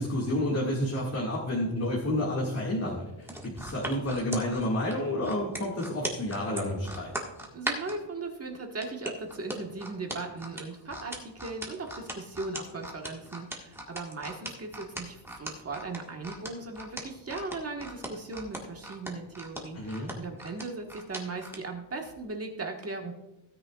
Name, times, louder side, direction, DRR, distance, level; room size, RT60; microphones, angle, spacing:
voice 1, 0.0-7.1 19.7-20.1, left 1 dB, 35° left, -4 dB, 2.0 m, -30 dB
sound 1, 3.2-8.0 8.8-21.6 22.1-22.2, right 1 dB, 5° right, 1.6 m, -38 dB
voice 2, 7.5-23.1, right 3 dB, 30° right, 2 dB, 1.4 m, -38 dB
16.5 x 9.6 x 2.4 m, 0.98 s
wide cardioid pair, 155°, 47 cm